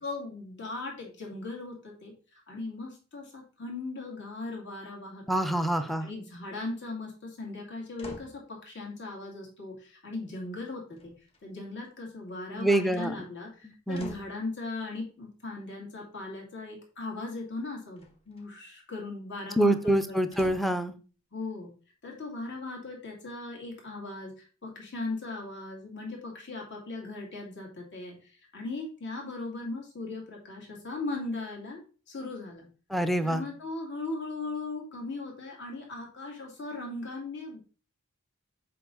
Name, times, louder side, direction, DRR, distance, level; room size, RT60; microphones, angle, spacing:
voice 1, 0.0-5.7 6.0-11.1 11.4-20.2 21.3-21.7 22.0-31.8 32.1-32.7 33.2-37.6, left 3 dB, 55° left, -2 dB, 2.5 m, -38 dB
voice 2, 5.3-6.1 12.6-13.1 13.9-14.2 19.6-20.9 32.9-33.4, right 1 dB, ahead, 10 dB, 0.6 m, -26 dB
sound 1, 8.0-8.4 10.9-11.7 12.6-13.0 13.9-14.4 17.9-18.5 20.3-20.9 21.5-21.6, equal, 25° left, 1.3 m, -47 dB
7.6 x 5.2 x 3.8 m, 0.37 s
head